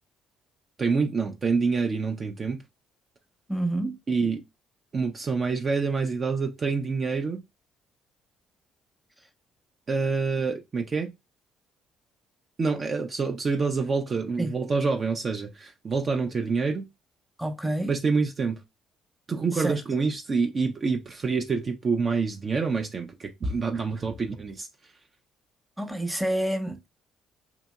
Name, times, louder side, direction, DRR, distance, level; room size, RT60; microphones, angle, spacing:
voice 1, 0.8-2.6 4.1-4.4 4.9-7.4 9.9-11.1 12.6-16.9 17.8-18.6 19.3-24.7, right 4 dB, 40° right, 0.4 m, -27 dB
voice 2, 3.5-4.0 14.4-14.5 17.4-17.9 19.5-19.8 25.8-26.9, right 1 dB, 5° right, 0.7 m, -28 dB
2.7 x 2.7 x 2.2 m
hypercardioid pair, 50°, 0 cm